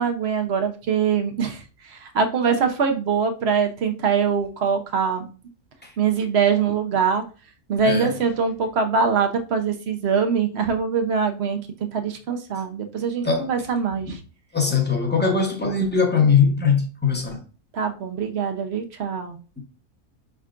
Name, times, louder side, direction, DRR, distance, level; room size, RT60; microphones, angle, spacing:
voice 1, 0.0-5.3 6.0-7.2 7.7-11.6 11.9-14.2 17.7-19.4, right 6 dB, 55° right, 0.9 m, -23 dB
voice 2, 14.5-17.4, left 5 dB, 10° left, 0.8 m, -21 dB
5.4 x 3.6 x 2.4 m
omnidirectional pair, 1.5 m